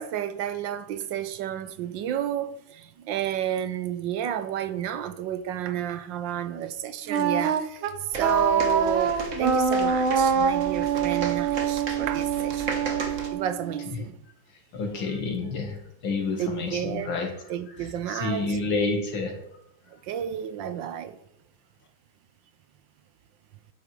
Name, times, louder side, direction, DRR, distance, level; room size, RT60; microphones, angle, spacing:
voice 1, 0.0-7.8 8.1-12.8 13.3-14.2 16.4-17.2 17.5-18.5 20.1-21.2, right 10 dB, 75° right, 1.4 m, -31 dB
Wind instrument woodwind instrument, 7.1-14.0, right 6 dB, 90° right, 1.7 m, -25 dB
sound 1, 8.1-13.3, right 3 dB, 40° right, 1.6 m, -36 dB
voice 2, 14.5-17.4 17.7-19.4, left 3 dB, 85° left, 2.8 m, -30 dB
11.0 x 8.8 x 4.8 m
omnidirectional pair, 2.1 m